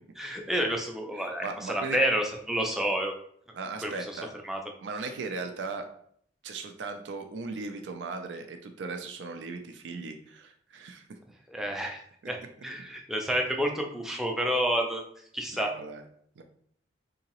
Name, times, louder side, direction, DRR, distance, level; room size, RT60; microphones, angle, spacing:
voice 1, 0.2-3.1 3.8-4.2 4.4-4.6 11.5-12.0 12.3-12.4 12.6-15.0 15.3-15.7, equal, 5° right, 2 dB, 0.4 m, -29 dB
voice 2, 1.2-2.0 3.5-4.3 4.8-5.9 6.4-11.2 15.5-16.0 16.4-16.5, right 4 dB, 90° right, 6 dB, 0.4 m, -37 dB
3.8 x 2.8 x 2.9 m, 0.65 s
head